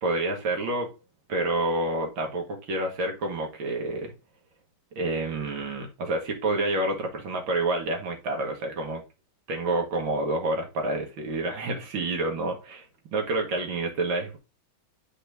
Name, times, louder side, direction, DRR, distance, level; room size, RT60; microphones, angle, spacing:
voice 1, 0.0-0.9 1.3-4.1 4.9-9.0 9.5-14.4, right 2 dB, 65° right, 2.6 m, -28 dB
11.0 x 4.3 x 2.8 m
omnidirectional pair, 2.3 m